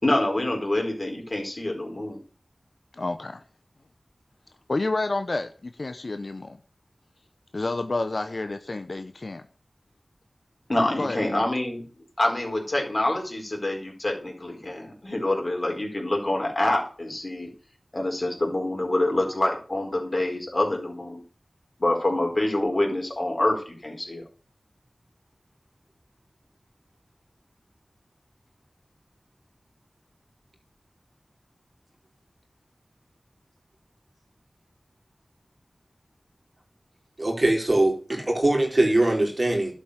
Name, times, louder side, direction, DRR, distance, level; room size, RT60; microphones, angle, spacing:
voice 1, 0.0-2.2 10.7-11.8 12.2-17.5 17.9-21.2 21.8-24.2, left 1 dB, 40° left, 4.5 m, -26 dB
voice 2, 2.9-3.4 4.7-6.6 7.5-9.4 11.0-11.5, left 2 dB, 55° left, 0.9 m, -29 dB
voice 3, 37.2-39.7, right 1 dB, 40° right, 4.2 m, -22 dB
11.5 x 7.3 x 6.5 m
wide cardioid pair, 60°, 0 cm